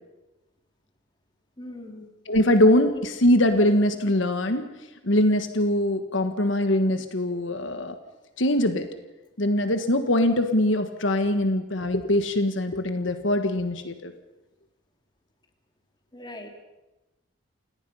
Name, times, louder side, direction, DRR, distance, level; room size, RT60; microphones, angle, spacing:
voice 1, 1.6-2.1 2.9-3.0 16.1-16.5, left 1 dB, 20° left, 3 dB, 2.5 m, -40 dB
voice 2, 2.3-4.7 5.0-7.9 8.4-8.9 9.4-14.1, left 1 dB, 70° left, 8 dB, 1.4 m, -22 dB
29.5 x 18.0 x 5.6 m, 1.1 s
head